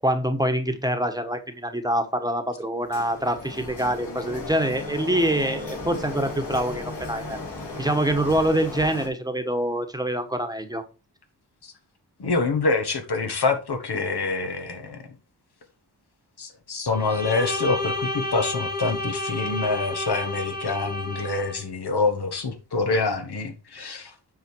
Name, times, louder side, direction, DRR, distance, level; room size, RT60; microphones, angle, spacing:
voice 1, 0.0-7.4 7.8-10.8, right 1 dB, 10° right, 1.3 m, -25 dB
Printer, 2.9-9.1, left 2 dB, 90° left, 4.2 m, -35 dB
voice 2, 12.2-15.0 16.4-24.1, left 3 dB, 70° left, 1.6 m, -26 dB
Bowed string instrument, 16.9-21.6, left 2 dB, 20° left, 2.0 m, -30 dB
9.0 x 5.0 x 4.6 m
wide cardioid pair, 85°, 41 cm